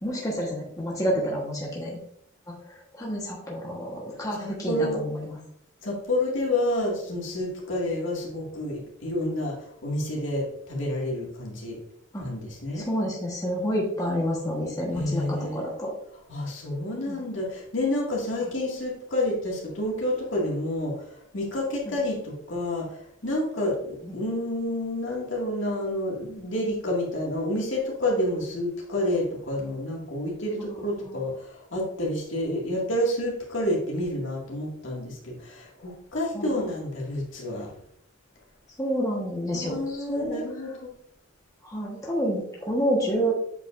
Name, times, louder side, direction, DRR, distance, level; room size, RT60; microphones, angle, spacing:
voice 1, 0.0-2.0 2.5-5.4 12.1-12.2 12.7-15.9 17.1-17.2 21.9-22.0 24.0-24.2 30.7-31.2 36.3-36.7 38.8-40.4 41.6-43.3, equal, 15° left, -3 dB, 1.2 m, -29 dB
voice 2, 4.4-5.0 5.8-11.8 12.2-12.9 14.9-15.7 16.3-37.7 39.5-40.9, left 1 dB, 65° left, -3 dB, 2.0 m, -29 dB
8.0 x 5.0 x 2.5 m, 0.71 s
head